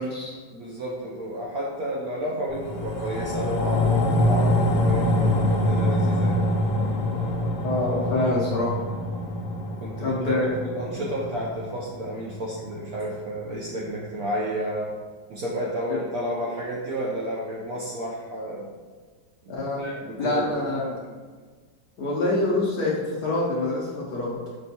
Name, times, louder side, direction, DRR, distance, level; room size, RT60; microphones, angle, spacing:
voice 1, 0.0-0.3 7.6-8.7 10.0-10.6 15.9-16.0 19.5-19.9 20.2-21.0 22.0-24.3, left 2 dB, 70° left, -4 dB, 1.0 m, -25 dB
voice 2, 0.5-6.4 9.8-14.9 15.3-18.7 19.4-20.7, right 1 dB, 75° right, -4 dB, 0.8 m, -31 dB
sound 1, 2.5-13.1 13.5-13.6, left 1 dB, 90° left, 1.4 m, -25 dB
6.0 x 2.2 x 2.7 m, 1.5 s
omnidirectional pair, 2.1 m